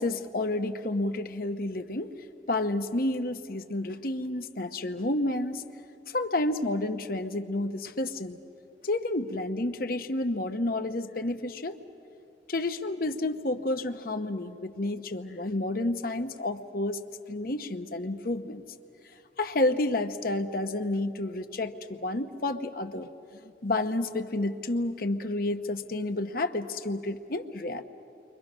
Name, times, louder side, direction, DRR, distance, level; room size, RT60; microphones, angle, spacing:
voice 1, 0.0-2.1 2.5-5.6 6.1-8.4 8.8-11.8 12.5-17.0 17.3-18.6 19.4-23.1 23.6-27.8, left 2 dB, 50° left, 8 dB, 1.0 m, -30 dB
30.0 x 24.5 x 6.3 m, 2.7 s
head